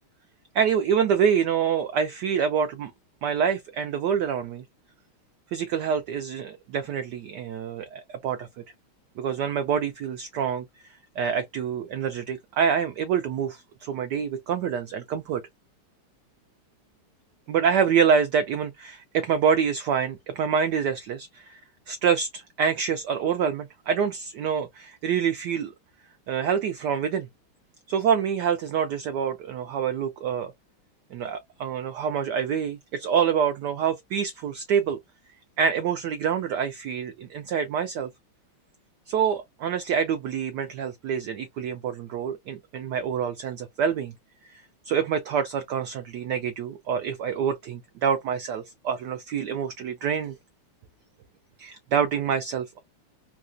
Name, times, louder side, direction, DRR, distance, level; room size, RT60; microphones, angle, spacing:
voice 1, 0.5-2.9 3.2-4.6 5.5-8.5 9.2-10.6 11.2-15.4 17.5-21.6 21.9-25.7 26.3-27.3 27.9-30.5 31.1-35.0 35.6-38.1 39.1-44.1 44.5-50.3 51.6-52.8, right 7 dB, 85° right, 0.9 m, -26 dB
4.0 x 2.3 x 2.4 m
omnidirectional pair, 2.4 m